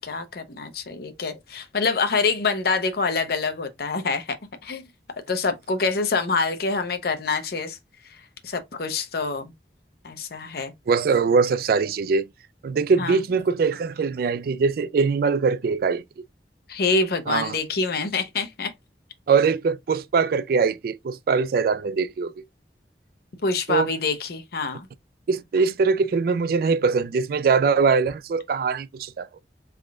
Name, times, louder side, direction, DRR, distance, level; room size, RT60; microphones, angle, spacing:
voice 1, 0.0-4.4 4.6-4.8 5.3-7.8 8.4-9.5 10.0-10.7 13.0-13.2 16.7-18.7 23.4-24.9, left 4 dB, 60° left, 0.6 m, -26 dB
voice 2, 10.9-12.3 12.6-16.0 17.3-17.6 19.3-22.3 23.7-23.9 25.3-29.3, right 5 dB, 55° right, 0.3 m, -22 dB
3.5 x 2.4 x 3.2 m
head